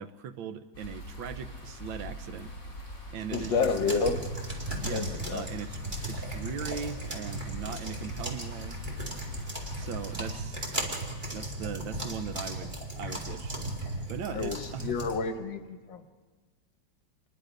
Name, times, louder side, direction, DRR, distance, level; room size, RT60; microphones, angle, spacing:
voice 1, 0.0-2.5 3.1-4.2 4.8-8.8 9.8-10.6 11.3-13.6 14.1-14.9, right 7 dB, 85° right, 11 dB, 1.6 m, -39 dB
sound 1, 0.7-10.4, left 1 dB, 45° left, 5.1 m, -43 dB
voice 2, 3.3-4.2 4.9-5.5 14.3-16.0, left 5 dB, 75° left, 9 dB, 1.8 m, -30 dB
sound 2, 3.3-15.2, right 1 dB, 25° right, 2.6 m, -36 dB
27.5 x 20.5 x 5.2 m, 1.5 s
omnidirectional pair, 2.1 m